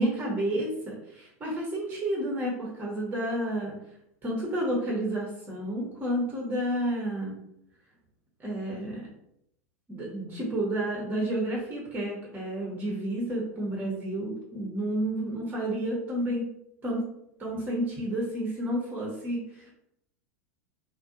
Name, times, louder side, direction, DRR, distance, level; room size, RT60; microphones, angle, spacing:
voice 1, 0.0-3.7 4.2-7.3 8.4-9.1 9.9-16.4 16.8-17.0 17.4-19.4, right 1 dB, 20° right, -3 dB, 0.9 m, -30 dB
2.5 x 2.2 x 2.5 m, 0.77 s
hypercardioid pair, 90°, 8 cm